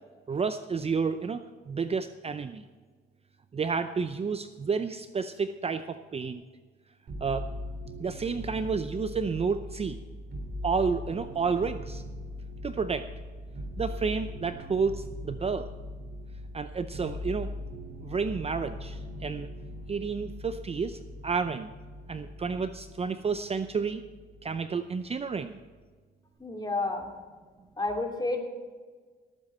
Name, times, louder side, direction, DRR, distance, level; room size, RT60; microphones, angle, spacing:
voice 1, 0.3-1.4 1.7-2.6 3.5-6.4 7.2-7.5 8.0-10.0 10.6-12.0 12.6-13.1 13.8-15.7 16.5-17.5 18.0-19.5 19.9-21.7 22.1-24.0 24.4-25.6, right 5 dB, 30° right, 10 dB, 0.6 m, -30 dB
sound 1, 7.1-24.5 24.8-25.6, left 1 dB, 60° right, 4.2 m, -40 dB
voice 2, 26.4-27.1 27.8-28.4, left 2 dB, 20° left, 2 dB, 2.7 m, -30 dB
18.0 x 8.9 x 4.3 m, 1.4 s
cardioid pair, 90°, 20 cm